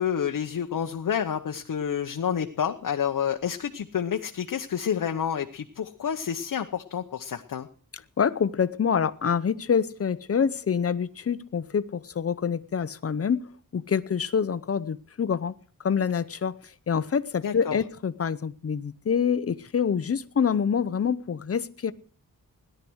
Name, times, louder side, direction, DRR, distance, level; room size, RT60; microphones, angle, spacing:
voice 1, 0.0-7.7 17.4-17.8, left 8 dB, 65° left, 4 dB, 1.0 m, -29 dB
voice 2, 8.2-13.4 13.7-15.5 15.8-16.6 16.9-21.9, left 7 dB, 40° left, 15 dB, 0.8 m, -26 dB
17.5 x 11.5 x 6.3 m, 0.43 s
wide cardioid pair, 165°, 35 cm